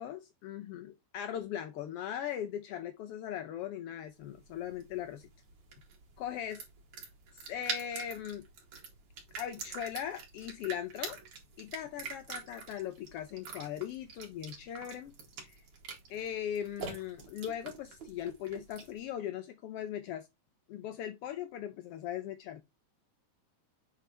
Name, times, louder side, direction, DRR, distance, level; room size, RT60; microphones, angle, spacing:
voice 1, 0.0-5.3 6.2-6.6 7.3-8.5 9.4-11.2 11.6-15.6 16.1-20.3 20.7-22.6, left 10 dB, 80° left, 1.4 m, -39 dB
sound 1, 4.2-19.0, right 5 dB, 70° right, 3.2 m, -45 dB
7.9 x 3.3 x 4.3 m
omnidirectional pair, 3.3 m